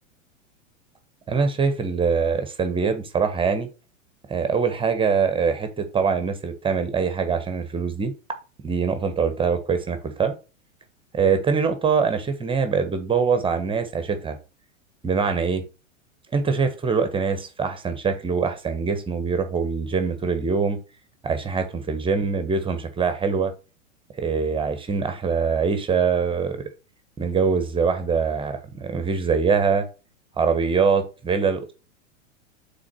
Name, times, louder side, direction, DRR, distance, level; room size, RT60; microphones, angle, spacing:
voice 1, 1.3-3.7 4.3-8.1 8.6-10.3 11.1-14.4 15.0-15.6 16.3-20.8 21.2-23.5 24.2-26.6 27.2-29.9 30.4-31.7, right 5 dB, 15° right, 1.1 m, -23 dB
6.3 x 4.0 x 6.0 m
figure-of-eight pair, 95°, 39 cm